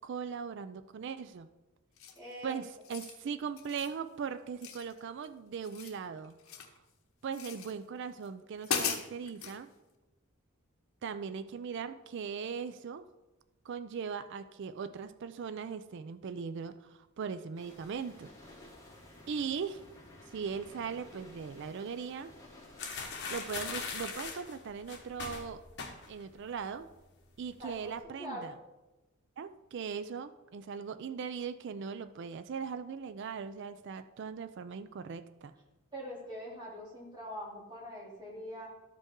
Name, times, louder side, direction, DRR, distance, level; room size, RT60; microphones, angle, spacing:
voice 1, 0.0-1.5 2.4-6.7 7.2-9.7 11.0-13.1 13.6-18.3 19.3-19.8 20.3-22.3 23.3-25.6 26.1-26.9 27.4-28.5 29.4-35.5, right 6 dB, 55° right, 11 dB, 0.4 m, -39 dB
sound 1, 2.0-2.3 2.7-3.2 3.6-4.0 4.6-5.3 5.5-6.8 7.3-7.7 8.2-8.3 8.6-9.6, left 7 dB, 80° left, 1.0 m, -38 dB
voice 2, 2.1-2.6 27.6-27.9 28.2-28.5 35.9-38.7, equal, 20° right, -5 dB, 3.1 m, -43 dB
sound 2, 17.6-23.4, left 1 dB, 15° left, 2.4 m, -54 dB
sound 3, 22.8-26.3 26.6-26.9 27.2-27.8, left 5 dB, 55° left, 1.4 m, -40 dB
12.5 x 5.3 x 3.7 m, 1.1 s
head